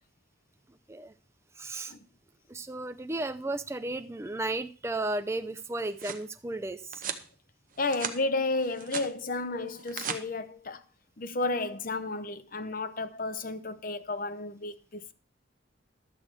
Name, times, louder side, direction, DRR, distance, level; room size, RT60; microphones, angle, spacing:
voice 1, 1.6-1.9 2.5-7.1, right 2 dB, 15° right, 0.4 m, -34 dB
sound 1, 5.6-6.3 6.9-7.3 7.7-8.2 8.5-9.1 9.7-10.2, right 7 dB, 45° right, 0.9 m, -37 dB
voice 2, 7.8-10.8 11.2-15.1, left 3 dB, 45° left, 0.7 m, -32 dB
11.5 x 4.8 x 7.6 m
head